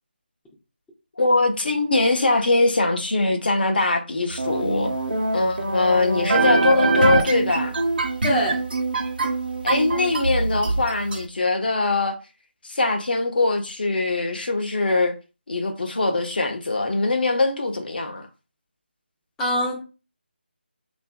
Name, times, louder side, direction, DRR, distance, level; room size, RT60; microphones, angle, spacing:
voice 1, 1.2-4.9 5.3-7.7 9.6-12.2 12.6-15.1 15.5-18.3, left 2 dB, 55° left, 0.6 m, -22 dB
sound 1, 4.4-11.2, right 3 dB, 55° right, 0.7 m, -23 dB
voice 2, 8.2-8.6 19.4-19.9, equal, 5° left, 0.4 m, -23 dB
2.7 x 2.4 x 2.2 m
figure-of-eight pair, 160°, 6 cm